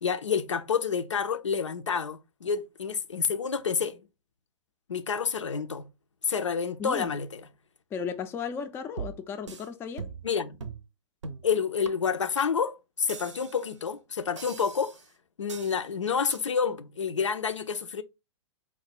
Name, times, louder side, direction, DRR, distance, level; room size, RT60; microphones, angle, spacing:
voice 1, 0.0-4.0 4.9-5.9 6.2-7.4 10.2-10.6 11.4-14.9 15.4-18.0, left 6 dB, 75° left, 0.5 m, -29 dB
voice 2, 6.8-7.2 7.9-10.1, left 6 dB, 15° left, 0.4 m, -35 dB
sound 1, 9.0-9.7 10.0-10.3 10.6-10.8 11.2-11.5 11.8-11.9 12.4-12.5 13.1-13.7 14.4-15.1 15.5-15.8 16.3-16.4, right 5 dB, 70° right, 0.6 m, -40 dB
4.3 x 2.2 x 4.1 m
figure-of-eight pair, 105°, 16 cm